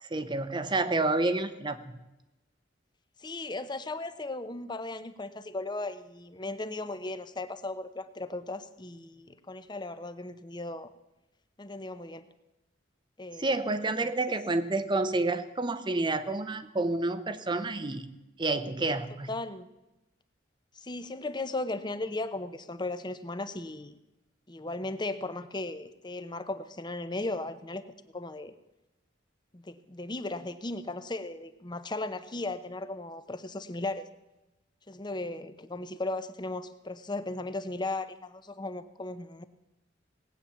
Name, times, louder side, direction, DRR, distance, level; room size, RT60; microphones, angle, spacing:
voice 1, 0.0-1.9 13.4-18.1 18.4-19.3, right 2 dB, 25° right, 11 dB, 0.7 m, -29 dB
voice 2, 3.2-10.9 11.6-12.3 13.2-13.6 14.0-14.1 19.3-19.7 20.7-24.0 24.5-28.5 29.5-34.1 34.9-39.4, left 2 dB, 25° left, 12 dB, 0.8 m, -36 dB
18.5 x 8.8 x 7.0 m, 0.99 s
head